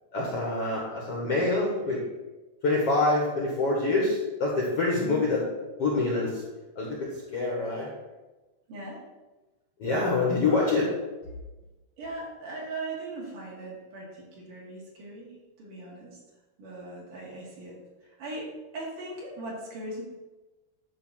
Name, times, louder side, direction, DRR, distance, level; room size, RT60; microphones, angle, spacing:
voice 1, 0.1-2.0 2.6-5.4 5.8-6.4 6.8-7.9 9.8-10.8, left 3 dB, 55° left, -3 dB, 1.8 m, -26 dB
voice 2, 8.7-9.0 10.4-10.6 12.0-16.2 16.6-18.5 18.7-20.0, right 2 dB, 55° right, -4 dB, 3.7 m, -39 dB
11.0 x 3.8 x 7.5 m, 1.1 s
omnidirectional pair, 4.7 m